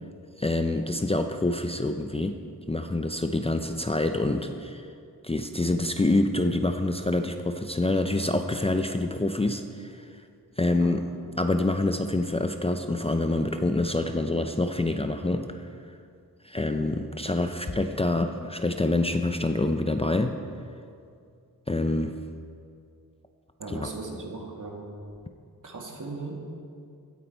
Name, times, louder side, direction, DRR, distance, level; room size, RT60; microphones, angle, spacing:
voice 1, 0.4-2.4 2.7-4.9 5.2-10.1 10.6-11.0 11.4-15.7 16.4-20.4 21.7-22.2 23.7-23.9, left 2 dB, 15° left, 6 dB, 0.6 m, -26 dB
voice 2, 23.6-25.0 25.6-26.4, right 3 dB, 55° right, 0 dB, 2.3 m, -37 dB
16.5 x 9.4 x 4.6 m, 2.4 s
cardioid pair, 85°, 37 cm